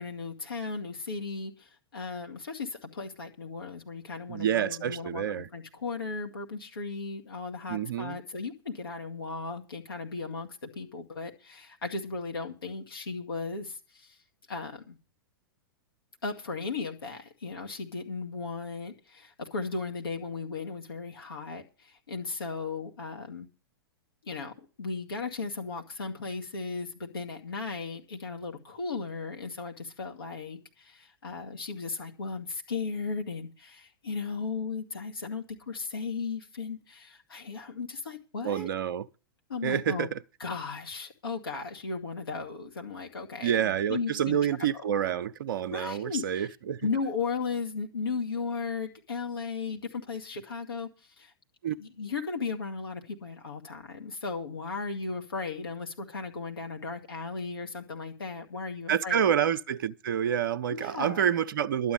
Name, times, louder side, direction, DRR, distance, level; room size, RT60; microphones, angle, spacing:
voice 1, 0.0-14.1 14.5-15.0 16.2-21.6 22.1-23.5 24.2-38.7 39.5-40.1 40.4-44.4 45.7-46.5 46.8-50.9 51.2-51.3 51.8-59.3 60.7-61.2, left 4 dB, 75° left, 2.1 m, -36 dB
voice 2, 4.3-5.5 7.7-8.2 38.4-39.1 39.6-40.1 43.4-46.9 51.6-51.8 58.9-61.9, right 9 dB, 55° right, 0.6 m, -28 dB
12.0 x 8.8 x 6.9 m
figure-of-eight pair, 100°, 13 cm